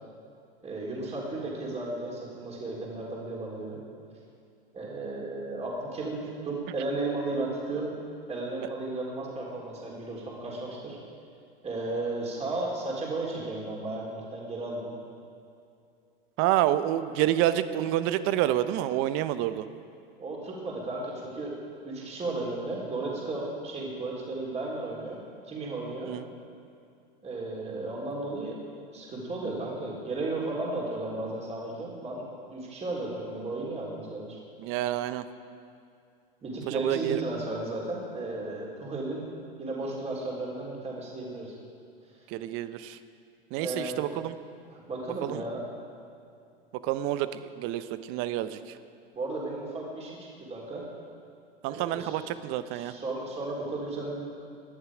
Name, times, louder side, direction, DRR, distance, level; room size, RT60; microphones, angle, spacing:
voice 1, 0.6-3.8 4.7-7.9 8.3-11.0 11.6-14.9 20.2-25.2 25.5-26.1 27.2-28.6 28.9-34.4 36.4-39.3 39.6-41.5 43.6-44.0 44.7-45.6 49.1-50.8 51.7-52.2 52.7-54.3, right 2 dB, 20° right, -3 dB, 3.6 m, -34 dB
voice 2, 16.4-19.7 26.1-26.2 34.6-35.2 36.7-37.2 42.3-43.0 43.5-44.3 45.2-45.4 46.8-48.8 51.6-52.9, right 13 dB, 45° right, 13 dB, 0.9 m, -28 dB
19.0 x 11.0 x 5.0 m, 2.5 s
hypercardioid pair, 95°, 29 cm